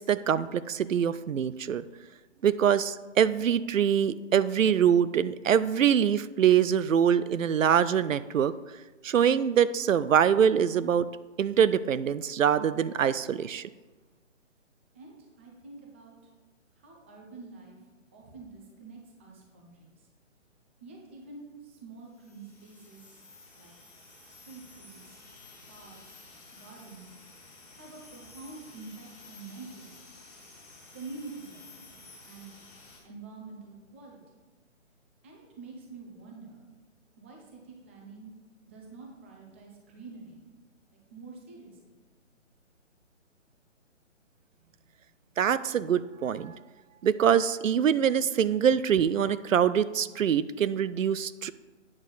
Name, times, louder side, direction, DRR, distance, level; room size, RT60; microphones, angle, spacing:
voice 1, 0.1-1.8 2.4-8.5 9.0-11.1 11.4-13.7 45.4-46.5 47.0-51.5, right 8 dB, 90° right, 15 dB, 0.5 m, -24 dB
voice 2, 14.9-16.2 16.7-17.8 18.1-20.1 20.8-23.2 23.5-23.7 24.3-25.2 25.7-26.2 26.5-27.1 27.7-30.0 30.9-32.0 32.2-32.6 33.0-34.3 35.2-36.7 37.2-38.3 38.6-40.5 41.1-42.0, right 3 dB, 10° right, -1 dB, 0.6 m, -47 dB
sound 1, 22.1-33.0, left 3 dB, 5° left, 1.8 m, -52 dB
8.7 x 6.4 x 4.0 m, 1.2 s
hypercardioid pair, 150°, 38 cm